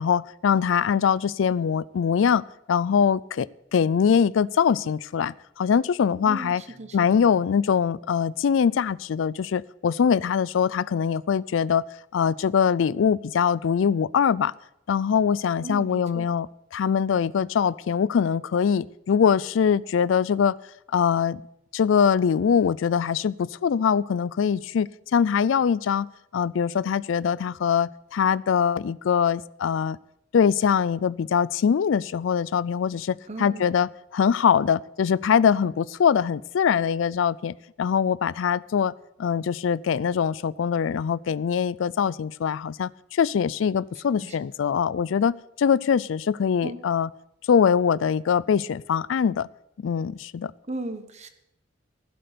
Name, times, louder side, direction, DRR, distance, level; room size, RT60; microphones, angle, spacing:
voice 1, 0.0-2.4 2.7-6.6 6.9-11.8 12.1-14.5 14.9-16.5 16.7-20.6 20.9-21.4 21.7-26.1 26.3-30.0 30.3-38.9 39.2-47.1 47.5-49.5 49.8-50.5, left 7 dB, 80° left, 21 dB, 0.4 m, -23 dB
voice 2, 6.2-7.2 15.6-16.3 33.3-33.7 44.2-44.4 46.6-46.8 50.7-51.3, right 1 dB, 35° right, 9 dB, 1.2 m, -36 dB
15.5 x 7.8 x 6.7 m, 0.82 s
head